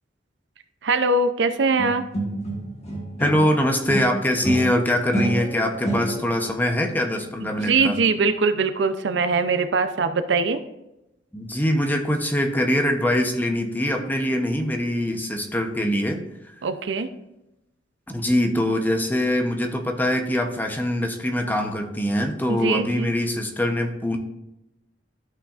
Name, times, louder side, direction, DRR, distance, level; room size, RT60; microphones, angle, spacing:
voice 1, 0.8-2.0 7.4-10.6 16.6-17.1 22.5-23.1, right 4 dB, 70° right, 10 dB, 0.5 m, -22 dB
sound 1, 1.8-3.6 3.9-6.5, right 1 dB, 35° left, 1.6 m, -28 dB
voice 2, 3.2-8.0 11.3-16.2 16.5-16.6 18.1-24.2, left 1 dB, 10° left, 4 dB, 0.8 m, -23 dB
13.0 x 5.6 x 2.5 m, 0.90 s
head